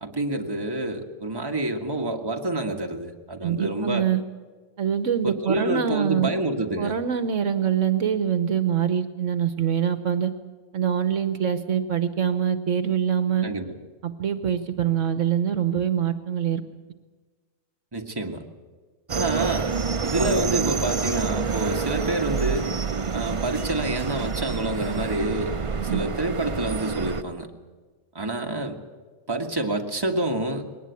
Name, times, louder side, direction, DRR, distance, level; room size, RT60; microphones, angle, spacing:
voice 1, 0.0-4.1 5.2-7.0 13.4-13.8 17.9-18.4 19.1-19.7 20.0-22.7 23.1-25.6 25.9-27.5 28.1-28.8 29.3-30.6, right 1 dB, 20° right, 2 dB, 1.7 m, -28 dB
voice 2, 3.4-4.2 4.8-6.3 6.8-10.3 10.7-13.5 14.0-16.6 25.8-26.0, right 8 dB, 65° right, 10 dB, 1.2 m, -24 dB
sound 1, 19.1-27.2, right 5 dB, 35° right, 0.6 m, -28 dB
21.0 x 18.0 x 8.4 m, 1.4 s
omnidirectional pair, 1.4 m